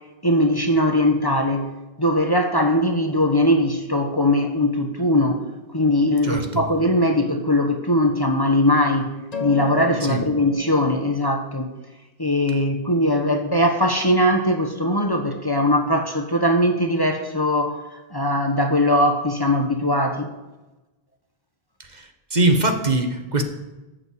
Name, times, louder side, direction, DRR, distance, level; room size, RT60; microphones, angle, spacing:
voice 1, 0.2-1.7 2.0-5.4 5.7-9.1 9.4-11.7 12.2-20.3, left 1 dB, 25° left, 4 dB, 1.1 m, -20 dB
voice 2, 6.2-6.6 10.0-10.2 21.8-23.4, right 2 dB, 45° right, 5 dB, 1.4 m, -22 dB
Psaltery Sounds, 9.3-11.1, left 3 dB, 40° left, 1.5 m, -31 dB
13.5 x 7.4 x 8.4 m, 1.1 s
omnidirectional pair, 1.0 m